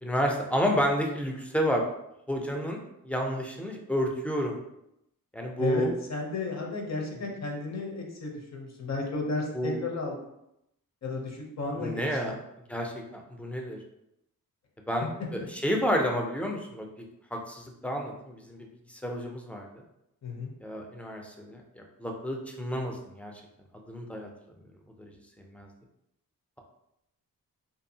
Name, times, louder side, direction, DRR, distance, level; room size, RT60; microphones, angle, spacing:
voice 1, 0.0-1.8 2.3-4.6 5.3-5.9 9.5-9.8 11.8-12.4 12.7-13.8 14.9-15.1 15.3-16.9 17.3-19.8 20.6-23.3 23.9-24.3 25.0-25.1 25.4-25.7, equal, 5° left, 1 dB, 0.3 m, -30 dB
voice 2, 5.6-10.2 11.0-12.4 20.2-20.5, left 3 dB, 50° left, 0 dB, 0.7 m, -33 dB
2.6 x 2.4 x 2.7 m, 0.82 s
wide cardioid pair, 105°, 36 cm